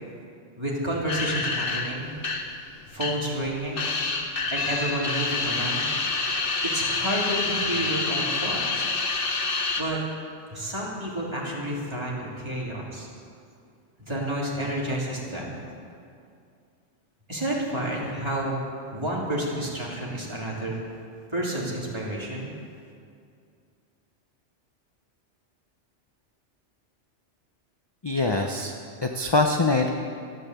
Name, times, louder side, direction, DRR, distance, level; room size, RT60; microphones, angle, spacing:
voice 1, 0.6-2.1 2.9-3.9 4.5-5.9 6.7-8.8 9.7-10.0 10.5-13.1 14.0-15.5 17.3-18.6 18.9-20.8 21.3-22.5, right 1 dB, 25° right, -5 dB, 3.2 m, -30 dB
sound 1, 1.1-3.5 3.8-9.8, left 3 dB, 50° left, 1.2 m, -27 dB
voice 2, 28.0-28.7 29.0-29.9, left 3 dB, 25° left, 2 dB, 0.7 m, -23 dB
14.0 x 10.5 x 8.1 m, 2.4 s
omnidirectional pair, 1.2 m